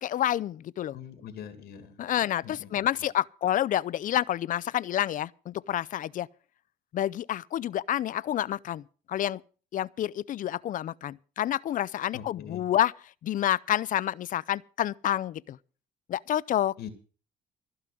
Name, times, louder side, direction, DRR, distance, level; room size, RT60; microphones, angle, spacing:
voice 1, 0.0-1.0 2.0-6.3 6.9-9.4 9.7-12.9 13.2-15.6 16.1-16.9, left 11 dB, 50° left, 0.5 m, -29 dB
voice 2, 0.9-2.0 2.4-2.9 12.1-12.6 16.8-16.9, left 8 dB, 70° left, 2.1 m, -43 dB
15.5 x 5.7 x 9.1 m
cardioid pair, 110°, 17 cm